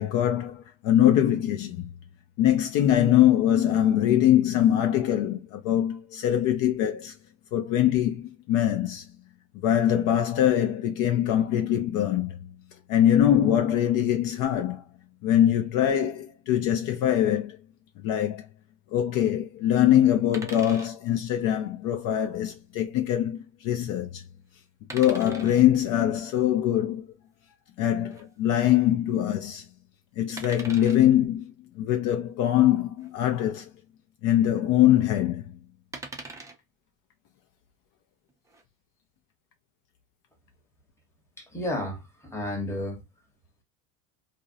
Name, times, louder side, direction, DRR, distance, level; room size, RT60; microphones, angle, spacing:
voice 1, 0.0-1.9 2.4-7.1 7.5-9.1 9.6-12.4 12.9-14.8 15.2-17.6 18.0-18.5 18.9-24.2 24.9-27.1 27.8-29.7 30.2-33.7 34.2-35.5, left 11 dB, 55° left, 0.5 m, -23 dB
sound 1, 20.3-20.9 22.4-22.6 24.9-25.7 28.1-28.2 30.4-31.0 33.0-33.1 33.4-33.5 35.9-36.6 38.3-38.6, right 3 dB, 10° right, 0.4 m, -41 dB
voice 2, 41.4-43.0, left 1 dB, 5° left, 0.9 m, -32 dB
2.5 x 2.0 x 2.5 m
supercardioid pair, 105°, 40 cm